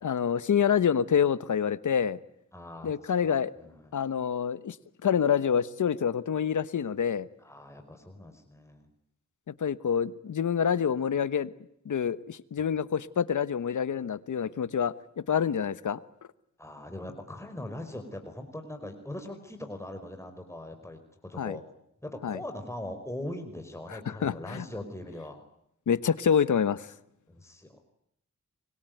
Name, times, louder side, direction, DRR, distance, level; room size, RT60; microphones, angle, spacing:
voice 1, 0.0-2.2 2.8-3.5 3.9-4.8 5.0-7.3 9.5-11.5 11.8-16.0 21.4-21.6 22.2-22.4 23.9-24.6 25.9-26.9, left 7 dB, 80° left, 16 dB, 1.2 m, -27 dB
voice 2, 2.5-4.0 7.4-8.9 16.6-21.6 22.0-25.4 27.3-27.8, left 1 dB, 10° left, 5 dB, 4.9 m, -41 dB
25.5 x 22.5 x 9.3 m, 0.74 s
cardioid pair, 60°, 30 cm